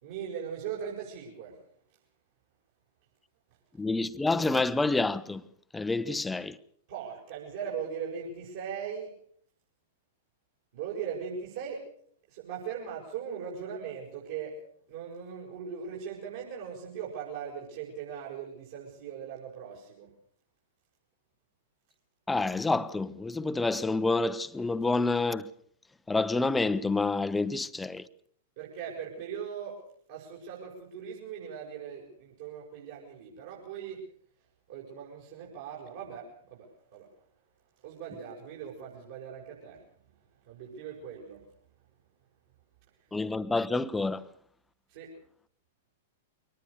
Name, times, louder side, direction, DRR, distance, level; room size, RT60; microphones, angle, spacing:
voice 1, 0.0-1.6 6.9-9.1 10.7-11.8 12.3-14.6 14.9-20.1 28.6-29.8 30.1-34.0 34.7-37.1 37.8-39.8 40.5-41.4 44.9-45.1, right 7 dB, 55° right, 6.0 m, -39 dB
voice 2, 3.8-5.4 5.7-6.6 22.3-25.5 26.1-28.0 43.1-44.2, left 3 dB, 10° left, 0.8 m, -28 dB
23.5 x 19.0 x 6.7 m
figure-of-eight pair, 100°, 0 cm